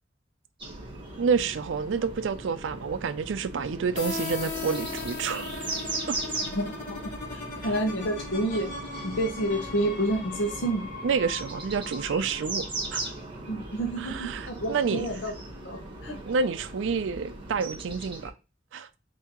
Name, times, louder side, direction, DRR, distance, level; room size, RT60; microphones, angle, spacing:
sound 1, 0.6-18.3, right 2 dB, 30° right, 1.3 m, -38 dB
voice 1, 1.2-5.7 6.1-6.2 7.7-7.8 11.0-13.1 14.0-15.1 16.3-18.3 18.7-18.9, right 5 dB, 80° right, 0.4 m, -29 dB
sound 2, 4.0-13.5, left 3 dB, 45° left, 1.5 m, -38 dB
voice 2, 6.5-8.7 9.0-10.9 13.5-15.3 15.6-16.2, right 1 dB, 70° left, 0.9 m, -29 dB
5.6 x 2.8 x 2.9 m
head